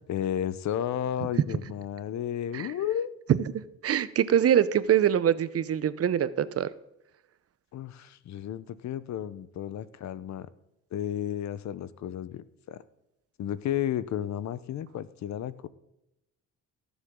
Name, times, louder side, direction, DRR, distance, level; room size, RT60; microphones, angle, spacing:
voice 1, 0.1-3.1 7.7-10.5 10.9-12.8 13.4-15.7, left 10 dB, 65° left, 16 dB, 0.8 m, -33 dB
voice 2, 3.8-6.7, right 9 dB, 50° right, 15 dB, 0.7 m, -24 dB
17.0 x 7.2 x 3.7 m, 0.86 s
cardioid pair, 90°, 30 cm